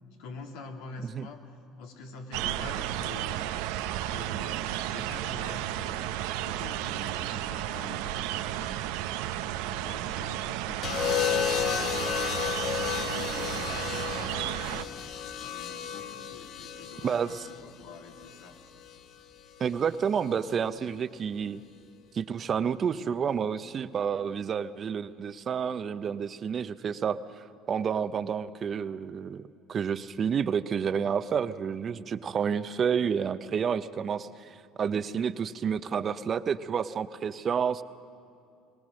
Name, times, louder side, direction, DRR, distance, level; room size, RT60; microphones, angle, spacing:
voice 1, 0.2-1.4 1.8-3.4 4.1-12.2 12.6-18.6, left 4 dB, 80° left, 2 dB, 2.2 m, -46 dB
sound 1, 2.3-14.8, right 13 dB, 80° right, 0.6 m, -33 dB
sound 2, 10.8-19.0 20.2-20.6, left 9 dB, 60° left, 1.0 m, -33 dB
voice 2, 17.0-17.5 19.6-21.6 22.1-27.2 27.7-37.8, right 7 dB, 40° right, 13 dB, 0.7 m, -30 dB
22.5 x 18.5 x 6.4 m, 2.5 s
supercardioid pair, 85°, 0 cm